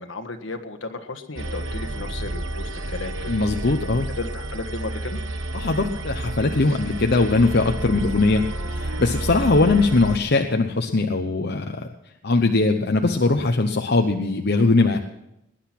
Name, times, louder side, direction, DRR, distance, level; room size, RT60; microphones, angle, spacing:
voice 1, 0.0-3.3 4.2-5.2, left 2 dB, 70° left, 8 dB, 1.6 m, -34 dB
sound 1, 1.4-10.2, right 1 dB, 80° right, 1.2 m, -30 dB
voice 2, 3.3-4.1 5.5-11.9 12.2-15.0, left 3 dB, 55° left, 3 dB, 0.9 m, -20 dB
20.0 x 10.5 x 6.0 m, 0.85 s
head